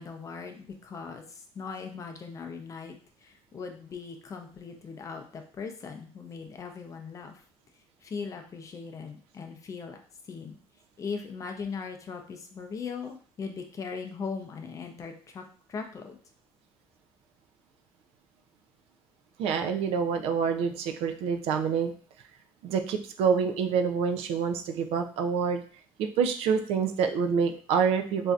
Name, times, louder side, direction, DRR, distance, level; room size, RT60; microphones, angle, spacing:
voice 1, 0.0-2.9 3.2-7.4 8.0-10.0 10.3-10.6 11.0-15.4 15.7-16.2, left 5 dB, 30° left, 4 dB, 0.5 m, -39 dB
voice 2, 19.4-21.9 22.6-25.6 26.0-28.3, right 6 dB, 75° right, 6 dB, 0.4 m, -27 dB
3.2 x 2.6 x 2.4 m, 0.43 s
cardioid pair, 130°, 10 cm